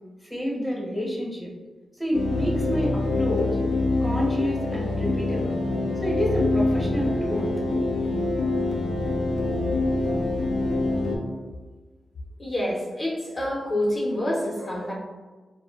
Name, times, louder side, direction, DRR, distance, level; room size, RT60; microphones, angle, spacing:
voice 1, 0.3-1.5 2.0-3.6 4.0-5.6 6.0-7.5, equal, ahead, -4 dB, 1.2 m, -28 dB
sound 1, 2.1-11.2, left 2 dB, 90° left, 0.4 m, -25 dB
voice 2, 12.4-14.9, left 1 dB, 45° left, -3 dB, 0.6 m, -27 dB
3.6 x 2.1 x 2.4 m, 1.3 s
cardioid pair, 55°, 0 cm